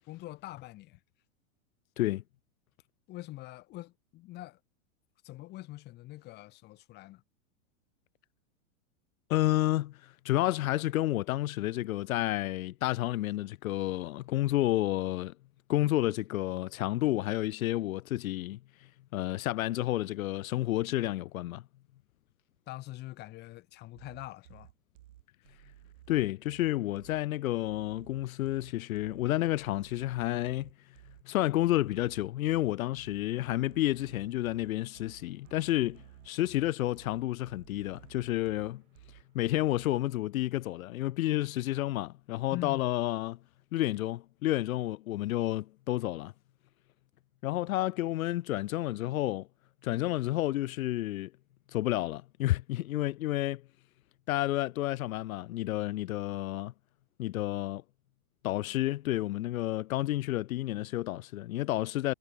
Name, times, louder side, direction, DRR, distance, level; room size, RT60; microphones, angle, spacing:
voice 1, 0.1-1.0 3.1-4.6 5.2-7.2 22.7-24.7 42.5-42.8, left 17 dB, 25° left, 2.4 m, -44 dB
voice 2, 9.3-15.3 15.7-18.6 19.1-21.6 26.1-30.7 31.2-38.8 39.3-43.4 43.7-46.3 47.4-49.5 49.8-51.3 51.7-53.6 54.3-56.7 57.2-57.8 58.4-62.1, left 15 dB, 85° left, 0.7 m, -30 dB
sound 1, 24.0-40.0, right 13 dB, 65° right, 6.3 m, -56 dB
supercardioid pair, 170°, 40 cm